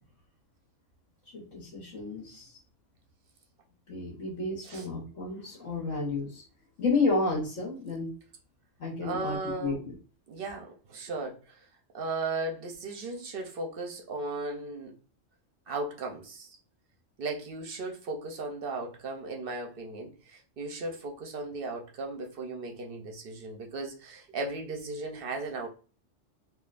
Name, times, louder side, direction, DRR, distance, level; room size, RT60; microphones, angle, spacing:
voice 1, 1.3-2.5 3.9-6.4 6.8-8.1 8.8-9.9, left 3 dB, 70° left, 1.4 m, -31 dB
voice 2, 9.0-9.9 10.3-11.7 11.9-14.9 15.7-16.6 17.2-25.7, right 2 dB, 55° right, 0.7 m, -36 dB
3.6 x 2.3 x 2.4 m
omnidirectional pair, 1.3 m